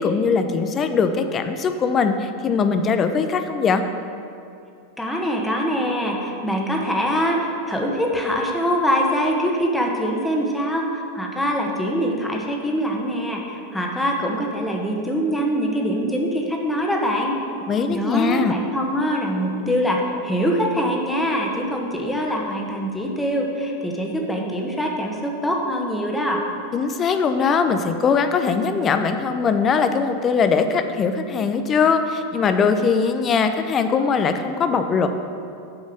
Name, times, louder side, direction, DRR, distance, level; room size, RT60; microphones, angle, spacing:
voice 1, 0.0-3.8 17.7-18.5 26.7-35.1, left 5 dB, 30° left, 8 dB, 0.7 m, -21 dB
voice 2, 5.0-17.3 17.9-26.4, equal, 5° left, 0 dB, 1.4 m, -23 dB
7.1 x 5.3 x 6.7 m, 2.6 s
hypercardioid pair, 90°, 0 cm